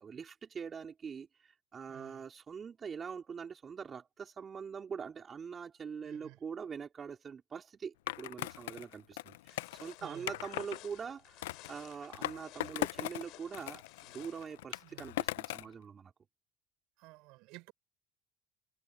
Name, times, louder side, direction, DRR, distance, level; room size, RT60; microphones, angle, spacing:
voice 1, 0.0-13.8 14.1-16.1, right 6 dB, 35° right, 4.1 m, -44 dB
voice 2, 1.9-2.3 6.0-6.4 10.0-10.4 14.8-15.1 17.0-17.7, right 23 dB, 70° right, 5.7 m, -53 dB
Skateboard, 8.1-10.8 11.4-13.3 13.5-15.7, left 17 dB, 85° left, 0.5 m, -39 dB
sound 1, 9.5-14.5, left 18 dB, 65° left, 7.1 m, -56 dB
supercardioid pair, 85°, 0 cm